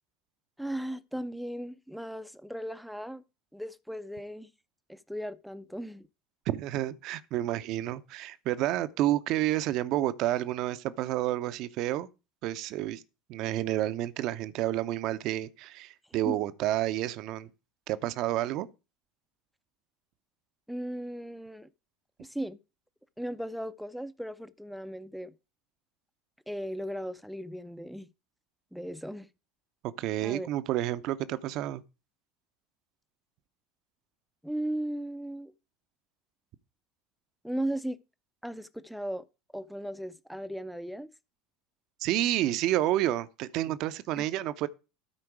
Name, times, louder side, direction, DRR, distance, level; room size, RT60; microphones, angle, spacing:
voice 1, 0.6-3.2 3.5-4.5 4.9-6.1 16.2-16.4 20.7-21.7 22.2-22.6 23.2-25.3 26.5-28.1 28.7-29.3 30.2-30.5 34.4-35.5 37.4-38.0 38.4-39.2 39.5-41.1 44.2-44.3, right 1 dB, ahead, 0.5 m, -36 dB
voice 2, 6.5-12.1 12.4-13.0 13.3-17.5 17.9-18.7 29.8-31.8 42.0-44.7, right 14 dB, 55° right, 0.6 m, -30 dB
13.0 x 4.5 x 4.7 m
figure-of-eight pair, 70°, 0 cm